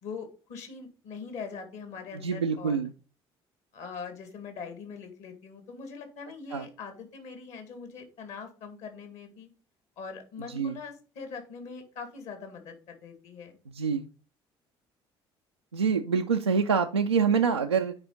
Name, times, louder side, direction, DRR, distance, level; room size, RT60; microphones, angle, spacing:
voice 1, 0.0-2.8 3.7-9.5 10.0-13.6, left 5 dB, 55° left, 6 dB, 2.1 m, -42 dB
voice 2, 2.2-2.9 6.5-6.7 10.5-10.8 13.7-14.1 15.7-17.9, right 6 dB, 85° right, 2 dB, 0.4 m, -26 dB
9.5 x 4.8 x 3.9 m, 0.36 s
figure-of-eight pair, 55°, 14 cm